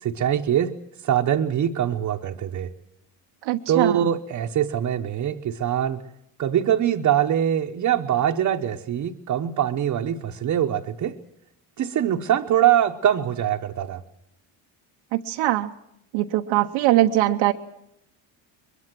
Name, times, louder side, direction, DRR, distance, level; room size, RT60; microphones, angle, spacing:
voice 1, 0.0-0.7 1.0-2.7 3.7-6.0 6.4-11.2 11.8-14.0, right 10 dB, 40° right, 1 dB, 1.0 m, -23 dB
voice 2, 3.4-4.1 15.1-15.7 16.1-17.5, right 15 dB, 85° right, 3 dB, 1.0 m, -21 dB
22.5 x 22.0 x 7.6 m, 0.79 s
cardioid pair, 150°, 46 cm